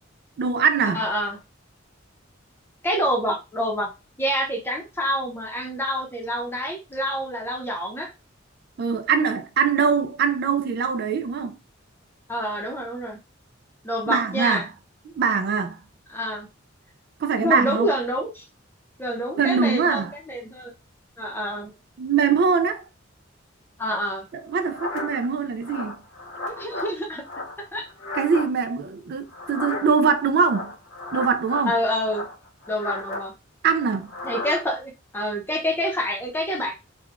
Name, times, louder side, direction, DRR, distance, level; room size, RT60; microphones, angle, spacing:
voice 1, 0.4-1.0 8.8-11.5 14.1-14.7 15.2-15.8 17.2-17.9 19.4-20.1 22.0-22.8 24.5-26.0 28.1-30.7 31.1-31.7 33.6-34.1, right 5 dB, 55° right, 0.3 m, -22 dB
voice 2, 0.9-1.4 2.8-3.9 4.2-8.1 12.3-13.2 13.8-14.7 16.1-16.5 17.4-18.4 19.0-20.7 21.2-21.7 23.8-24.3 26.4-27.2 27.6-27.8 31.6-32.3 32.7-33.3 34.2-36.7, equal, 10° left, 0.7 m, -27 dB
sound 1, 24.5-25.3 25.6-26.9 27.2-28.5 29.3-30.1 30.4-31.7 32.0-33.3 34.0-34.6, left 2 dB, 80° left, 1.0 m, -34 dB
3.5 x 2.2 x 2.4 m
head